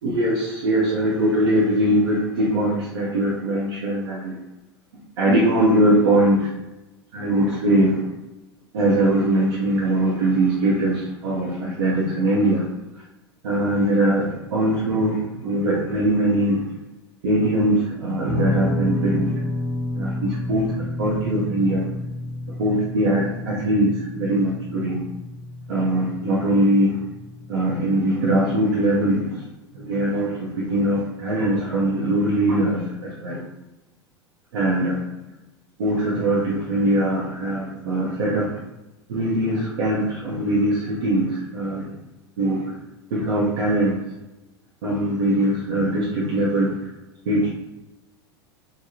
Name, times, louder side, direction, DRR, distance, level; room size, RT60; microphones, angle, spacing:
voice 1, 0.0-4.4 5.2-6.5 7.1-8.0 8.7-12.7 12.9-13.0 13.4-16.6 17.2-19.3 19.9-21.9 22.6-25.0 25.7-27.0 27.5-29.4 29.7-33.4 34.5-35.0 35.8-38.6 39.1-41.9 42.4-42.7 43.1-44.0 44.8-46.9 47.3-47.5, right 1 dB, 60° right, -6 dB, 0.7 m, -21 dB
Guitar, 18.3-27.5, left 1 dB, 10° left, 1.0 m, -30 dB
3.4 x 2.1 x 2.8 m, 0.99 s
figure-of-eight pair, 80°, 14 cm